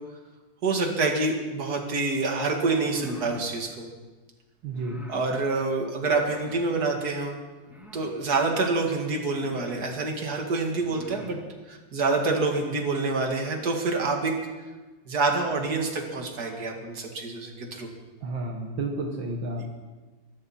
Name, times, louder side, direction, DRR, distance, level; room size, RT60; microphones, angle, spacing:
voice 1, 0.6-3.9 5.1-7.4 7.9-11.4 11.7-14.4 15.1-17.9, right 3 dB, 55° right, 2 dB, 2.5 m, -27 dB
sound 1, 2.7-3.5 4.7-5.2 6.1-6.6 7.6-8.2 8.9-9.0 9.3-9.9 10.7-11.3, equal, ahead, 2.5 m, -46 dB
voice 2, 4.6-5.0 18.2-19.7, right 2 dB, 75° right, 1 dB, 2.1 m, -31 dB
23.0 x 12.5 x 4.3 m, 1.3 s
omnidirectional pair, 2.1 m